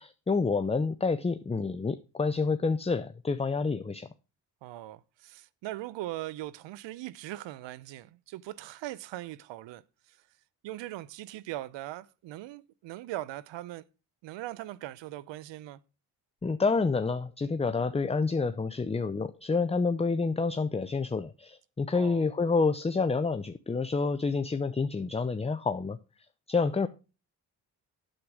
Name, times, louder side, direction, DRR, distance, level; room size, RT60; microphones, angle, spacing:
voice 1, 0.0-4.1 16.4-26.0 26.5-26.9, left 4 dB, 15° left, 0.6 m, -28 dB
voice 2, 4.6-10.2 10.6-13.8 14.2-15.8 21.9-22.2, right 15 dB, 75° right, 0.7 m, -40 dB
8.9 x 8.0 x 4.8 m
supercardioid pair, 60°, 44 cm